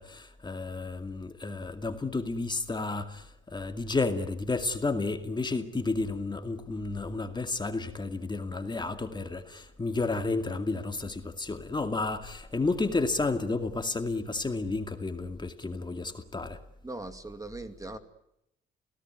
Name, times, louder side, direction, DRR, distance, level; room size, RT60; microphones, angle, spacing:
voice 1, 0.0-16.6, left 3 dB, 20° left, 2.3 m, -31 dB
voice 2, 16.8-18.0, right 2 dB, 15° right, 2.5 m, -40 dB
28.5 x 18.0 x 9.5 m
cardioid pair, 90°, 20 cm